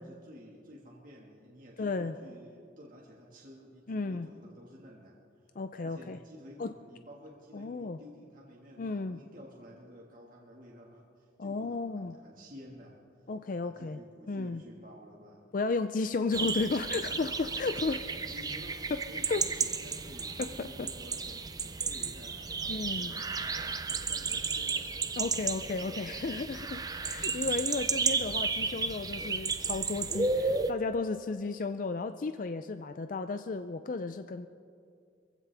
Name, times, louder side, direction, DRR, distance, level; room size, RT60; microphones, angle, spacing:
voice 1, 0.0-5.5 5.8-13.0 13.6-15.4 17.9-24.9 25.8-26.1, equal, 50° right, -3 dB, 1.8 m, -52 dB
voice 2, 1.8-2.2 3.9-4.3 5.6-6.2 6.6-6.7 7.5-8.0 8.8-9.2 11.4-12.2 13.3-14.0 14.3-14.6 15.5-18.0 18.9-19.0 19.3-19.4 20.4-20.9 22.7-23.1 25.2-34.5, left 3 dB, 50° left, 9 dB, 0.4 m, -33 dB
sound 1, 16.3-30.7, right 4 dB, 20° right, 0.6 m, -33 dB
24.0 x 15.5 x 3.4 m, 2.3 s
head